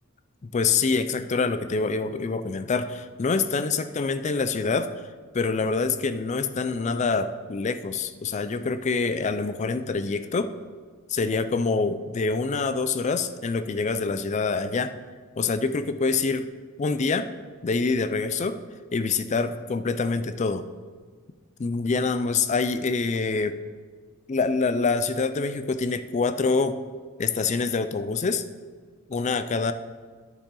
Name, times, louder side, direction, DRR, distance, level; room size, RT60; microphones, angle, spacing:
voice 1, 0.4-4.9 5.3-10.5 11.1-14.9 15.4-16.5 16.8-17.3 17.6-18.6 18.9-20.7 21.6-23.6 24.3-26.8 27.2-28.4 29.1-29.7, left 4 dB, 30° left, 11 dB, 0.4 m, -26 dB
9.9 x 7.3 x 3.8 m, 1.5 s
head